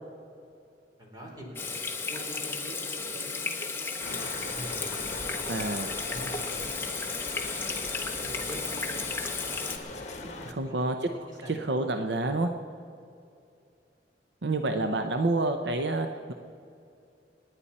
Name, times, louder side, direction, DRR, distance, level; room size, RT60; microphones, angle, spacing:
voice 1, 1.0-3.5 4.2-4.8 5.3-7.0 7.7-10.8 11.1-11.6, equal, 25° right, -2 dB, 4.3 m, -46 dB
Water tap faucet / Sink (filling or washing), 1.6-9.8, left 4 dB, 15° left, 1.2 m, -34 dB
sound 1, 4.0-10.5, left 2 dB, 45° left, 1.4 m, -40 dB
voice 2, 5.5-5.9 10.5-12.5 14.4-16.3, right 2 dB, 80° right, 6 dB, 0.8 m, -29 dB
28.5 x 9.9 x 4.3 m, 2.6 s
head